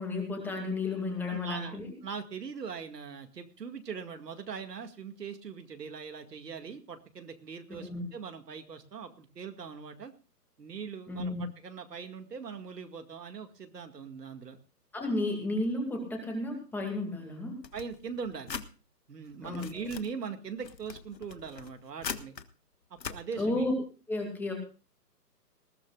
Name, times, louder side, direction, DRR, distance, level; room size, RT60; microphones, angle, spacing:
voice 1, 0.0-1.9 7.7-8.0 11.1-11.4 14.9-17.6 19.4-19.6 23.3-23.7 24.1-24.5, left 2 dB, 5° left, 1 dB, 2.3 m, -32 dB
voice 2, 1.3-10.1 10.6-14.6 17.7-18.6 19.1-22.3 22.9-23.7, right 6 dB, 75° right, 7 dB, 2.2 m, -41 dB
sound 1, 17.6-18.7 19.3-20.1 20.6-22.5 23.0-23.2, left 6 dB, 90° left, 1.5 m, -41 dB
20.0 x 15.5 x 2.4 m, 0.34 s
hypercardioid pair, 160°, 49 cm